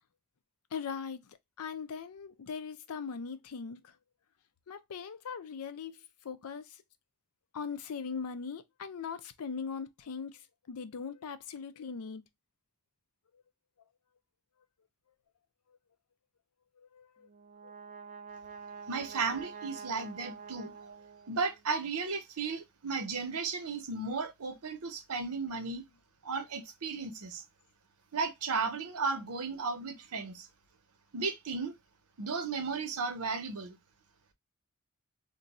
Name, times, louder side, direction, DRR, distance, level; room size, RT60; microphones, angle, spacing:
voice 1, 0.7-1.2 1.6-3.8 4.7-6.0 6.2-6.7 7.5-10.4 10.7-12.2 16.9-17.3, left 6 dB, 75° left, 0.5 m, -40 dB
Brass instrument, 17.2-21.6, right 6 dB, 35° right, 0.4 m, -47 dB
voice 2, 18.9-20.9 21.3-25.8 26.2-27.4 28.1-30.5 31.1-31.7 32.2-33.8, right 4 dB, 85° right, 0.8 m, -35 dB
2.6 x 2.3 x 4.0 m
head